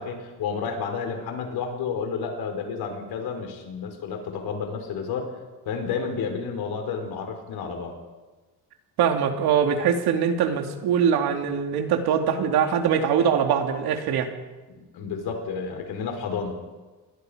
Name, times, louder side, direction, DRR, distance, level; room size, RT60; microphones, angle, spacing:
voice 1, 0.0-5.3 5.6-7.9 14.7-16.6, left 5 dB, 75° left, 4 dB, 4.7 m, -31 dB
voice 2, 9.0-14.3, right 7 dB, 85° right, 4 dB, 2.8 m, -22 dB
28.0 x 21.5 x 5.1 m, 1.2 s
cardioid pair, 175°, 38 cm